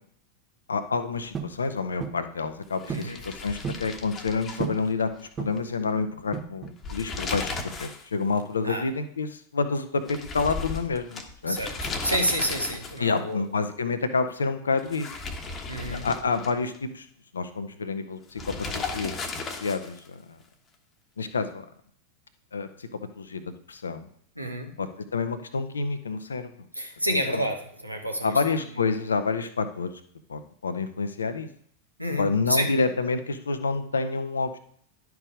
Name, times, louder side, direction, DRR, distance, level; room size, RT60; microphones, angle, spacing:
voice 1, 0.7-7.5 7.8-11.6 13.0-15.1 15.9-17.1 17.3-19.1 19.6-20.4 21.2-21.7 22.5-23.4 23.7-24.1 24.8-26.5 27.3-27.4 28.2-29.9 30.3-31.5 32.1-34.6, left 4 dB, 70° left, 10 dB, 0.7 m, -28 dB
sound 1, 1.3-1.6 2.0-2.3 2.9-3.2 3.4-3.9 4.6-4.9 5.4-5.7 6.3-6.8, right 6 dB, 25° right, 0.8 m, -34 dB
sound 2, 2.8-5.3 5.6-5.7 6.7-8.1 8.4-8.5 10.1-13.2 14.8-16.8 18.4-20.1, left 4 dB, 25° left, 1.1 m, -35 dB
voice 2, 2.9-3.2 8.6-8.8 11.4-11.7 12.0-13.4 15.7-16.0 24.4-24.7 26.7-28.3 32.0-32.7, equal, 85° right, 3 dB, 1.3 m, -29 dB
11.0 x 4.7 x 4.9 m, 0.62 s
figure-of-eight pair, 90°, 0 cm